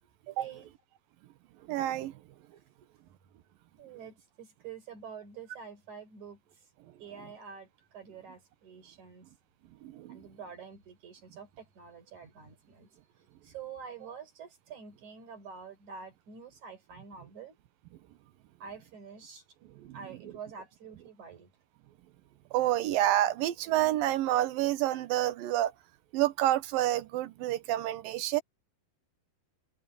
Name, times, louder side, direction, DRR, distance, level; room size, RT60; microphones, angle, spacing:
voice 1, 0.4-0.7 3.8-6.4 7.0-9.2 10.1-17.6 18.6-19.5 19.9-21.5, right 6 dB, 50° right, 6.0 m, -47 dB
voice 2, 1.7-2.1 9.8-10.2 19.9-20.0 22.5-25.7 26.1-28.4, right 14 dB, 70° right, 2.6 m, -28 dB
omnidirectional pair, 4.6 m